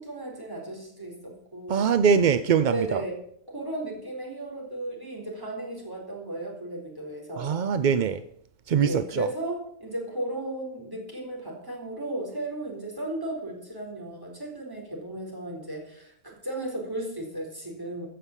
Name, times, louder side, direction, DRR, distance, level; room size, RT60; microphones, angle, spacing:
voice 1, 0.0-1.9 2.7-3.2 3.5-7.6 8.8-18.1, right 1 dB, 15° right, 4.0 m, -35 dB
voice 2, 1.7-3.0 7.4-8.2 8.7-9.3, right 7 dB, 60° right, 0.5 m, -22 dB
15.0 x 6.8 x 7.3 m
omnidirectional pair, 1.3 m